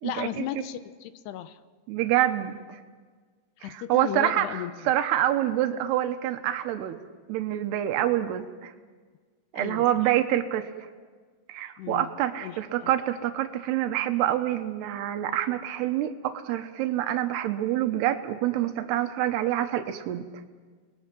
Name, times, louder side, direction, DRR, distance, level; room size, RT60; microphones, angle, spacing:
voice 1, 0.0-1.6 3.6-4.9 9.5-9.8 11.8-12.9, left 12 dB, 90° left, 12 dB, 3.0 m, -36 dB
voice 2, 1.9-2.8 3.6-7.0 7.3-8.7 9.5-10.7 11.5-20.2, right 12 dB, 85° right, 7 dB, 3.1 m, -26 dB
29.5 x 21.0 x 6.1 m, 1.5 s
omnidirectional pair, 4.6 m